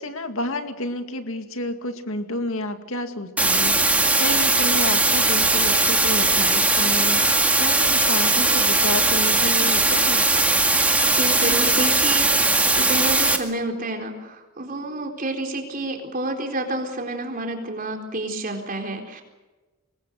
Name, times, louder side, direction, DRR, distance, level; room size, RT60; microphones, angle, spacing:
voice 1, 0.0-7.3 7.6-10.3, left 2 dB, 65° left, 6 dB, 2.3 m, -30 dB
sound 1, 3.4-13.4, right 2 dB, 5° right, 2.0 m, -19 dB
voice 2, 11.1-19.2, right 2 dB, 40° right, 3 dB, 4.1 m, -29 dB
26.5 x 21.0 x 6.6 m, 1.2 s
head